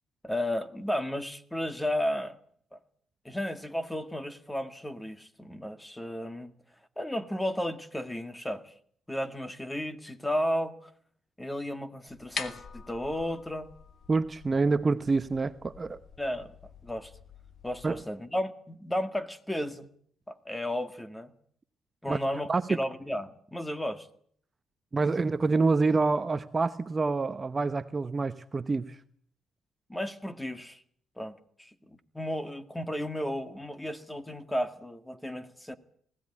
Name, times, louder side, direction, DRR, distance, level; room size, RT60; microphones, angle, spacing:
voice 1, 0.2-2.4 2.7-2.8 3.3-6.5 7.0-8.7 9.1-10.9 11.4-13.7 16.2-16.6 16.8-17.1 17.6-19.9 20.3-21.3 22.0-24.1 29.9-30.8 31.2-35.8, left 1 dB, 10° left, 1.9 m, -33 dB
sound 1, 12.1-18.0, left 6 dB, 55° left, 2.1 m, -45 dB
voice 2, 14.1-16.0 17.8-18.0 22.1-22.2 22.5-22.7 24.9-29.0, right 3 dB, 30° right, 0.9 m, -27 dB
20.5 x 16.5 x 10.0 m
cardioid pair, 90°, 0 cm